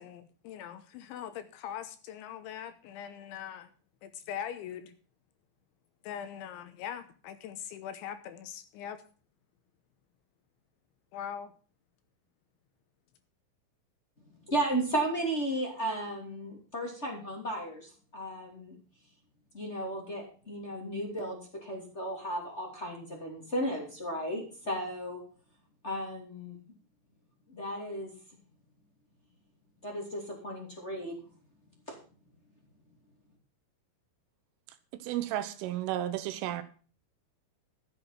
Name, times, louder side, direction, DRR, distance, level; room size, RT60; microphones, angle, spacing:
voice 1, 0.0-3.7 4.0-4.9 6.0-9.0 11.1-11.5, left 9 dB, 80° left, 10 dB, 3.0 m, -41 dB
voice 2, 14.4-18.7 19.5-25.2 25.8-26.6 27.5-28.1 29.8-31.2 31.9-32.0, right 1 dB, 20° left, -1 dB, 1.8 m, -34 dB
voice 3, 35.0-36.6, right 13 dB, 80° right, 11 dB, 3.3 m, -33 dB
13.5 x 7.9 x 5.9 m, 0.39 s
omnidirectional pair, 5.9 m